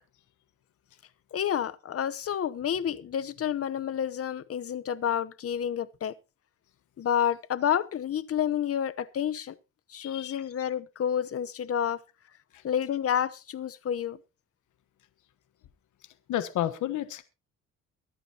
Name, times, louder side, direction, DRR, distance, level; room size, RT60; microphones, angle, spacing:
voice 1, 1.3-6.1 7.0-9.6 9.9-12.0 12.6-14.2, left 9 dB, 50° left, 1.0 m, -29 dB
voice 2, 10.0-10.4 16.3-17.2, left 12 dB, 75° left, 1.3 m, -31 dB
23.5 x 9.1 x 2.9 m
cardioid pair, 90°, 30 cm